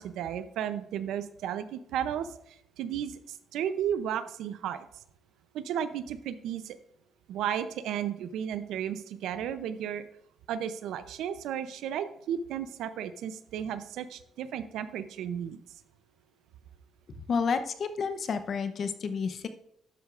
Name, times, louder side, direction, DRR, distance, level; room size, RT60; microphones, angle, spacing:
voice 1, 0.0-4.9 5.5-6.8 7.3-10.0 10.5-15.6, right 9 dB, 85° right, 12 dB, 0.6 m, -34 dB
voice 2, 17.2-19.5, left 5 dB, 55° left, 9 dB, 0.8 m, -30 dB
12.0 x 8.0 x 2.5 m, 0.74 s
cardioid pair, 90°, 0 cm